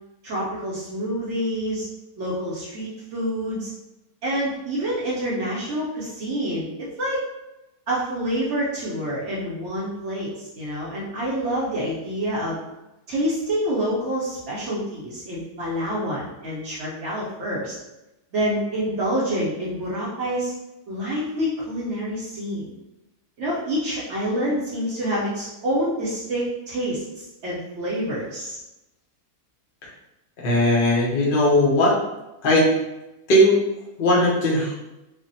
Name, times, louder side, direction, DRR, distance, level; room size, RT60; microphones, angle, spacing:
voice 1, 0.2-1.9 2.2-3.7 4.2-7.2 7.9-12.6 13.1-17.8 18.3-20.5 20.9-22.7 23.4-28.6, equal, 60° right, -6 dB, 0.8 m, -27 dB
voice 2, 30.4-32.0 32.4-32.7 33.3-33.6 34.0-34.7, left 1 dB, 55° left, -4 dB, 0.6 m, -18 dB
3.2 x 2.1 x 2.6 m, 0.95 s
omnidirectional pair, 1.7 m